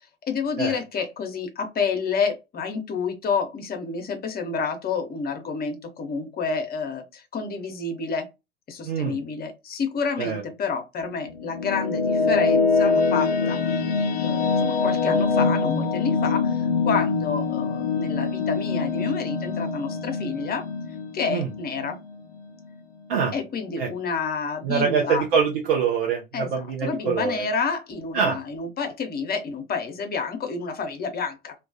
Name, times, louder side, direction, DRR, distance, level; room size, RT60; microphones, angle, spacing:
voice 1, 0.3-8.3 8.7-13.6 14.2-20.7 21.1-22.0 23.3-25.2 26.3-31.5, left 5 dB, 30° left, 0.8 m, -29 dB
voice 2, 8.8-9.2 10.2-10.4 21.3-21.5 23.1-23.3 23.8-23.9 24.6-27.4 28.1-28.4, right 6 dB, 70° right, 0.6 m, -24 dB
sound 1, 11.0-22.4, left 4 dB, 80° left, 0.5 m, -24 dB
2.3 x 2.3 x 2.5 m
figure-of-eight pair, 65°, 30 cm